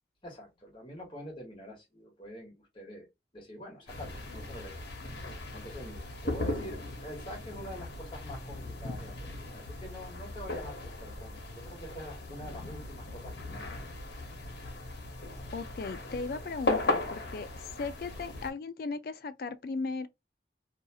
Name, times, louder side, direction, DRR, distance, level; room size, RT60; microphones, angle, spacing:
voice 1, 0.2-3.1 3.3-4.7 5.5-13.8, equal, 30° left, 1.2 m, -45 dB
sound 1, 3.9-18.5, left 2 dB, 70° left, 1.0 m, -37 dB
voice 2, 15.5-20.1, left 4 dB, 55° left, 0.3 m, -37 dB
2.7 x 2.3 x 2.7 m
head